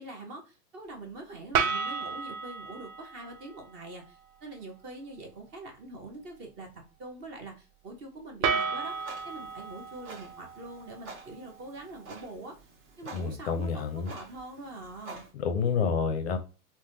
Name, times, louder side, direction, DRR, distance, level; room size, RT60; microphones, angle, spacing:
voice 1, 0.0-12.5 13.0-15.3, right 2 dB, 25° right, 2 dB, 0.6 m, -44 dB
sound 1, 1.5-3.6 8.4-11.6, right 5 dB, 70° right, 0.7 m, -33 dB
Clock, 8.8-15.3, right 3 dB, 55° right, 1.3 m, -49 dB
voice 2, 13.1-14.1 15.3-16.4, left 6 dB, 45° left, 8 dB, 0.5 m, -29 dB
3.3 x 2.1 x 2.5 m, 0.32 s
hypercardioid pair, 125°, 45 cm